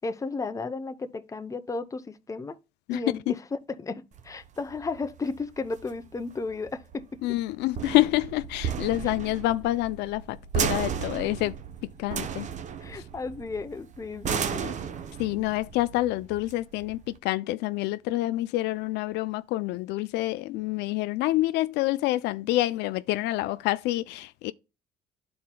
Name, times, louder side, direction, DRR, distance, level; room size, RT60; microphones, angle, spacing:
voice 1, 0.0-2.6 2.9-7.2 9.0-9.1 11.2-11.3 12.8-14.7, left 3 dB, 20° left, 0.7 m, -34 dB
sound 1, 4.1-17.2, right 7 dB, 45° right, 0.7 m, -34 dB
voice 2, 7.2-11.6 12.0-12.5 15.2-24.5, left 17 dB, 85° left, 0.4 m, -27 dB
12.5 x 4.2 x 2.2 m
cardioid pair, 110°, 17 cm